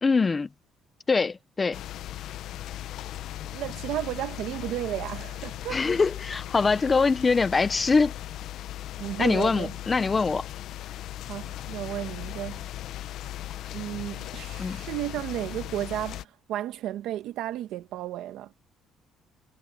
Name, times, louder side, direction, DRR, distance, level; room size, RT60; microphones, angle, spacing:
voice 1, 0.0-0.5 1.1-1.8 5.7-8.1 9.2-10.4 14.6-14.8, left 4 dB, 20° left, 0.8 m, -23 dB
sound 1, 1.7-16.2, left 13 dB, 65° left, 0.8 m, -38 dB
voice 2, 3.5-5.8 9.0-9.7 11.3-12.7 13.7-18.5, right 13 dB, 80° right, 1.9 m, -33 dB
cardioid pair, 160°, 0 cm